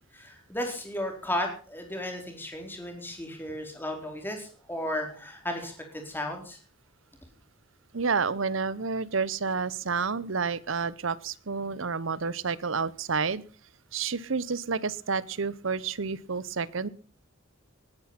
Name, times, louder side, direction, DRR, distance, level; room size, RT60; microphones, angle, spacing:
voice 1, 0.1-6.6, left 1 dB, 10° left, 3 dB, 4.3 m, -34 dB
voice 2, 7.9-13.4 13.9-16.9, right 5 dB, 75° right, 19 dB, 0.9 m, -30 dB
20.0 x 10.5 x 5.8 m, 0.40 s
head